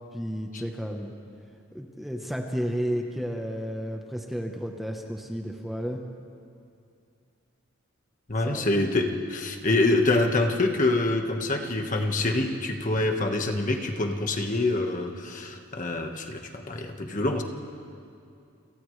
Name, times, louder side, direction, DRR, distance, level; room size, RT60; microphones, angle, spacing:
voice 1, 0.1-1.1 1.7-6.0 8.4-8.7, equal, ahead, 2 dB, 1.0 m, -32 dB
voice 2, 8.3-17.4, left 2 dB, 40° left, 3 dB, 1.5 m, -26 dB
29.5 x 27.5 x 3.3 m, 2.5 s
head